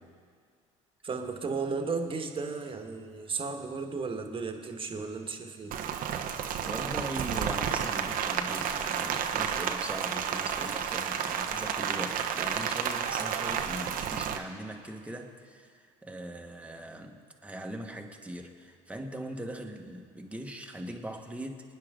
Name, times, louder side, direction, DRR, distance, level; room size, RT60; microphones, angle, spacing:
voice 1, 1.0-5.8, right 4 dB, 30° right, 4 dB, 1.8 m, -34 dB
Rain, 5.7-14.4, right 8 dB, 55° right, 1.1 m, -31 dB
voice 2, 6.0-21.7, right 1 dB, 10° right, 2 dB, 1.8 m, -41 dB
25.0 x 9.8 x 3.9 m, 2.1 s
hypercardioid pair, 75°, 17 cm